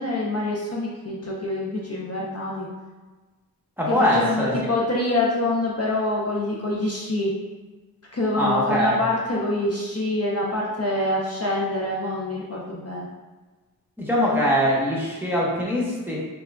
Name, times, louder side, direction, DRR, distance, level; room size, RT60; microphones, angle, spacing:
voice 1, 0.0-2.7 3.9-7.3 8.1-13.1, left 1 dB, 40° left, -4 dB, 0.6 m, -25 dB
voice 2, 3.8-4.7 8.3-9.0 14.0-16.2, left 1 dB, 5° right, -6 dB, 0.9 m, -22 dB
3.7 x 3.4 x 2.2 m, 1.3 s
wide cardioid pair, 55°, 37 cm